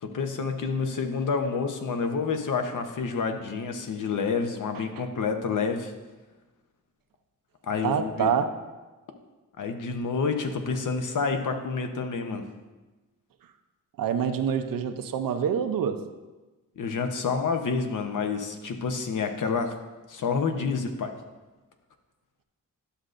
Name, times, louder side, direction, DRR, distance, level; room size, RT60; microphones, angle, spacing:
voice 1, 0.0-5.9 7.6-8.3 9.6-12.4 16.8-19.7 20.1-21.1, left 5 dB, 65° left, 5 dB, 0.8 m, -28 dB
voice 2, 7.8-8.5 14.0-16.0, right 7 dB, 85° right, 8 dB, 0.6 m, -26 dB
11.5 x 6.4 x 2.5 m, 1.2 s
wide cardioid pair, 130°, 33 cm